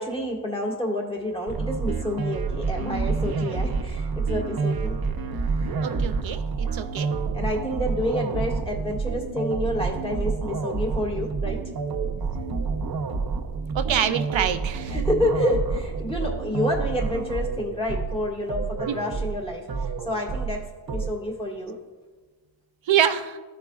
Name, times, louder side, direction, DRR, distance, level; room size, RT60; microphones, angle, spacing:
voice 1, 0.0-5.0 5.6-5.7 7.3-11.6 14.9-20.6 20.9-21.8, left 1 dB, 10° left, -2 dB, 1.7 m, -29 dB
sound 1, 1.5-21.1, right 4 dB, 55° right, 0.8 m, -28 dB
voice 2, 5.8-7.1 12.2-12.4 13.1-13.2 13.7-15.0 18.9-19.0 22.9-23.4, right 9 dB, 85° right, 9 dB, 0.6 m, -26 dB
14.5 x 4.8 x 2.3 m, 1.3 s
cardioid pair, 65°, 44 cm